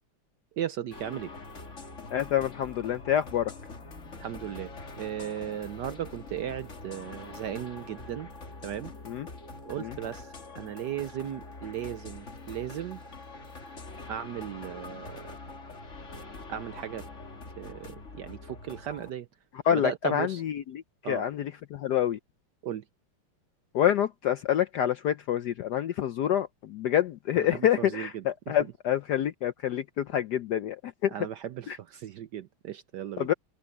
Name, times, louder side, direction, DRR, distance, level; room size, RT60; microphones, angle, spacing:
voice 1, 0.6-1.3 4.2-8.3 8.6-8.9 9.6-13.0 14.1-15.3 16.5-17.1 17.6-19.3 19.7-20.4 21.0-21.2 22.6-22.8 27.3-28.5 31.1-33.3, right 10 dB, 70° right, 1.1 m, -36 dB
sound 1, 0.9-19.1, left 3 dB, 35° left, 2.3 m, -44 dB
voice 2, 2.1-3.5 9.1-9.3 9.8-9.9 19.7-20.6 21.1-22.2 23.7-30.8 31.0-31.1 33.2-33.3, left 10 dB, 75° left, 1.0 m, -27 dB
open air
omnidirectional pair, 2.4 m